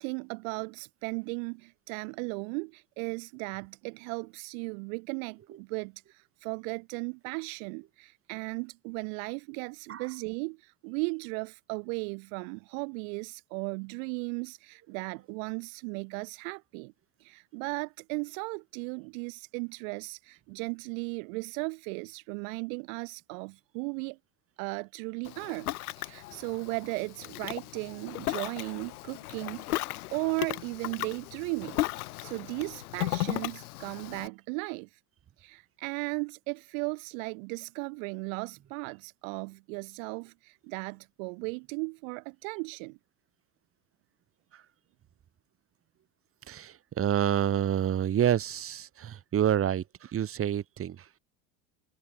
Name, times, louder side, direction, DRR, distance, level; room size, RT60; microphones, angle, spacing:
voice 1, 0.0-16.9 17.2-24.2 24.6-25.7 26.0-29.8 30.1-31.8 32.2-35.0 35.4-43.0, right 35 dB, 60° right, 1.4 m, -36 dB
Ocean, 25.2-34.3, left 17 dB, 75° left, 2.4 m, -36 dB
voice 2, 46.5-51.0, right 10 dB, 30° right, 2.3 m, -28 dB
hypercardioid pair, 110°, 45 cm